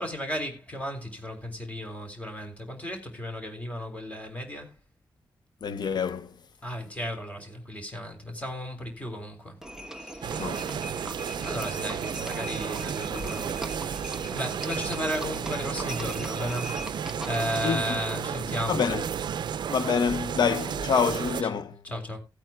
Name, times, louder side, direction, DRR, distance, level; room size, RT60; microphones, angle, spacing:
voice 1, 0.0-4.8 6.6-9.6 10.0-10.7 11.4-13.6 13.9-16.9 17.2-18.8 21.4-21.5 21.8-22.2, equal, 20° left, 3.6 m, -34 dB
voice 2, 5.6-6.3 10.4-10.6 17.6-17.8 18.7-19.0 19.7-21.8, left 6 dB, 65° left, 0.8 m, -26 dB
Livestock farm animals working animals, 9.6-17.7, equal, 5° right, 1.0 m, -40 dB
sound 1, 10.2-21.4, right 8 dB, 70° right, 0.5 m, -33 dB
18.5 x 8.9 x 2.3 m
wide cardioid pair, 170°, 8 cm